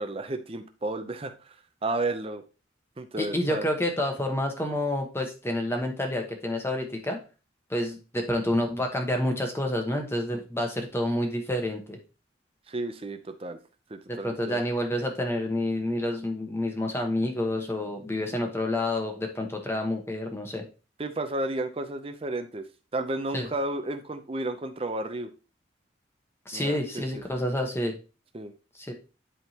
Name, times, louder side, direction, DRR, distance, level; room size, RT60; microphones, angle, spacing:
voice 1, 0.0-1.5 1.8-2.4 3.0-3.7 10.3-10.4 12.7-13.6 13.9-14.6 21.0-22.6 22.9-25.3 26.5-27.2 28.3-28.5, right 2 dB, 30° right, 7 dB, 0.6 m, -32 dB
voice 2, 3.2-7.2 7.7-12.0 14.1-20.6 23.3-23.5 26.4-28.0 28.8-28.9, left 1 dB, 15° left, 3 dB, 1.2 m, -29 dB
11.0 x 3.7 x 2.9 m, 0.33 s
head